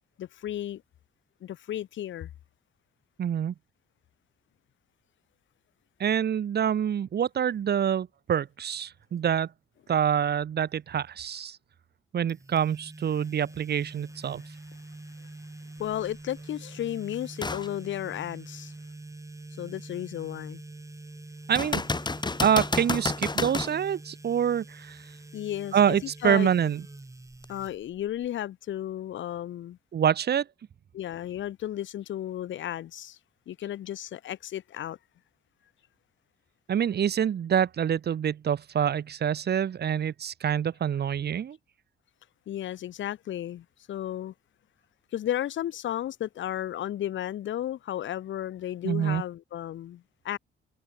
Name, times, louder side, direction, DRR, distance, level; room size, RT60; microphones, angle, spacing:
voice 1, 0.2-0.8 1.4-2.3 15.8-18.7 19.6-20.6 25.3-26.5 27.5-29.8 30.9-33.2 33.5-35.0 42.5-44.3 45.1-50.4, left 12 dB, 70° left, 2.6 m, -34 dB
voice 2, 3.2-3.5 6.0-9.5 9.9-11.6 12.1-14.4 21.5-21.8 22.4-25.0 25.7-26.8 29.9-30.4 36.7-41.6 48.8-49.2, right 8 dB, 55° right, 2.1 m, -26 dB
sound 1, 12.3-28.3, right 2 dB, 15° right, 7.4 m, -45 dB
sound 2, 17.4-17.7 18.3-18.4 21.5-23.8 27.4-27.5, left 3 dB, 20° left, 4.3 m, -30 dB
cardioid pair, 90°, 20 cm